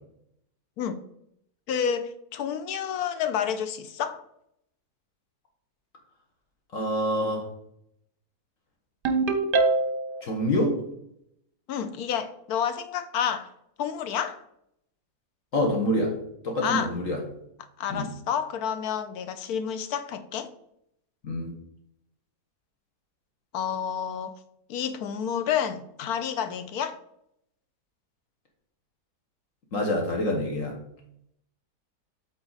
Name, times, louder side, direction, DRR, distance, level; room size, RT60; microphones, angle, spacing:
voice 1, 1.7-4.2 11.7-13.5 13.8-14.4 16.6-16.9 17.8-20.5 23.5-24.3 24.7-27.0, left 8 dB, 75° left, 1.2 m, -29 dB
voice 2, 6.7-7.5 10.2-10.8 15.5-16.1 16.4-17.2 17.9-18.1 21.2-21.5 29.7-30.8, left 1 dB, 55° left, 1.6 m, -26 dB
Ringtone, 9.0-10.2, right 3 dB, 45° right, 0.8 m, -23 dB
8.2 x 4.1 x 4.0 m
omnidirectional pair, 1.7 m